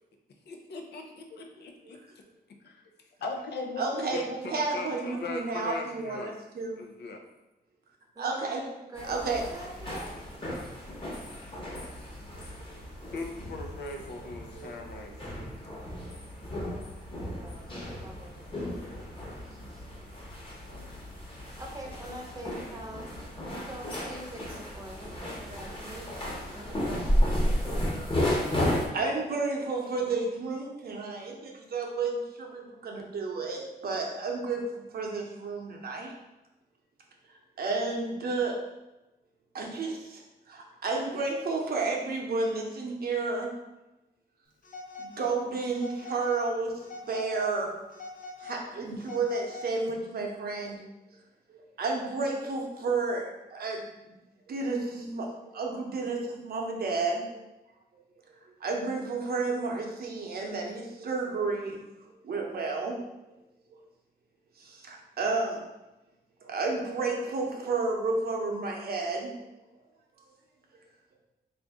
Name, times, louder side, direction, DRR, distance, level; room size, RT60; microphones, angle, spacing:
voice 1, 0.5-2.0 2.6-2.8 3.2-6.3 6.8-7.2 12.5-12.6 13.1-15.3, left 3 dB, 85° left, 3 dB, 0.6 m, -39 dB
voice 2, 3.8-6.8 8.2-8.6 9.0-9.4 14.5-14.7 28.9-36.1 37.6-38.5 39.5-40.2 40.5-43.5 45.0-46.7 47.1-47.7 48.4-50.8 51.5-53.8 54.5-57.4 58.6-61.8 62.2-62.9 64.6-65.6 66.4-69.3, right 3 dB, 65° right, 0 dB, 0.7 m, -31 dB
voice 3, 8.1-10.7 17.1-19.0 19.2-19.9 21.6-23.1 23.5-28.7, right 1 dB, 20° right, 0 dB, 0.7 m, -45 dB
sound 1, 9.0-28.9, left 1 dB, 30° left, 1.0 m, -33 dB
Telephone, 44.6-45.4 45.7-46.4 46.8-47.5 47.9-49.9, left 2 dB, 55° left, 0.8 m, -43 dB
3.8 x 2.6 x 3.5 m, 1.0 s
wide cardioid pair, 115°, 17 cm